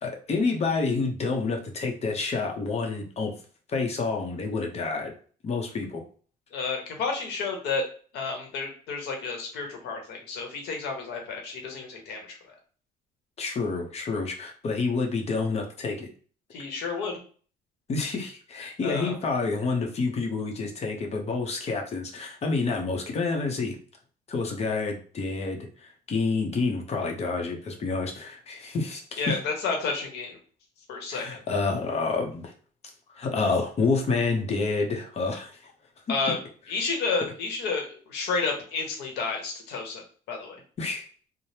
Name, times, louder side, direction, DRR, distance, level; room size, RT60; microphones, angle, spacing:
voice 1, 0.0-3.3 3.7-5.1 5.4-6.0 13.4-16.1 17.9-23.8 24.3-29.4 31.1-32.5 33.1-35.7 36.1-36.2 40.8-41.1, left 4 dB, 40° left, 2 dB, 0.7 m, -28 dB
voice 2, 6.5-7.8 8.1-12.4 16.5-17.2 18.8-19.1 29.2-30.4 30.9-31.4 36.1-36.4 36.7-40.0 40.3-40.6, left 4 dB, 85° left, 2 dB, 0.9 m, -31 dB
3.2 x 2.1 x 2.8 m, 0.42 s
cardioid pair, 110°, 17 cm